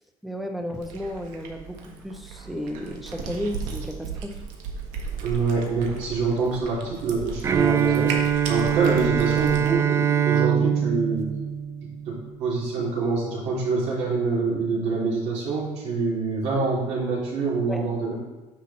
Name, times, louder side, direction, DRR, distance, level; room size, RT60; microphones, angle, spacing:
voice 1, 0.2-4.4 17.7-17.9, equal, ahead, 5 dB, 0.7 m, -33 dB
Cat, 0.7-9.7, right 5 dB, 80° right, 1.6 m, -36 dB
voice 2, 5.2-8.2 8.5-11.3 12.1-18.1, right 4 dB, 65° right, -6 dB, 3.2 m, -25 dB
Bowed string instrument, 7.4-12.3, right 9 dB, 20° right, 0.3 m, -23 dB
9.6 x 6.2 x 4.2 m, 1.1 s
cardioid pair, 155°, 12 cm